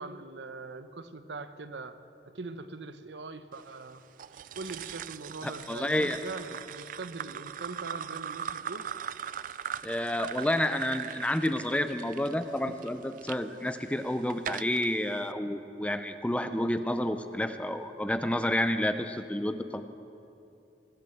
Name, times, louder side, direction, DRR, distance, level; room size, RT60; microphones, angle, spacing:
voice 1, 0.0-2.0 2.3-4.0 4.3-8.9, right 3 dB, 85° right, 11 dB, 0.8 m, -42 dB
sound 1, 4.2-13.4 13.9-14.9, right 9 dB, 50° right, 0.3 m, -40 dB
voice 2, 5.4-6.2 9.8-19.8, left 1 dB, 5° left, 9 dB, 0.6 m, -30 dB
19.5 x 9.0 x 7.8 m, 2.6 s
head